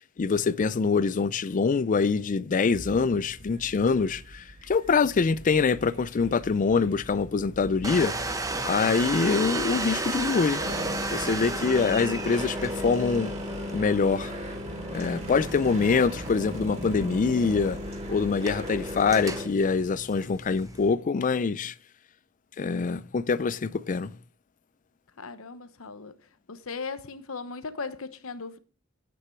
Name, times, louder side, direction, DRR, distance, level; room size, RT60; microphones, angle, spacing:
voice 1, 0.2-8.3 8.6-10.6 11.1-13.3 13.7-14.3 14.9-17.8 18.1-21.7 22.6-24.1, left 5 dB, 40° left, 0.4 m, -25 dB
sound 1, 2.7-19.5, equal, 35° right, 3.3 m, -37 dB
Domestic sounds home sounds, 7.8-20.9, right 3 dB, 15° right, 1.0 m, -35 dB
voice 2, 25.2-26.1 26.5-28.6, left 4 dB, 75° left, 1.0 m, -37 dB
10.0 x 8.7 x 4.6 m
head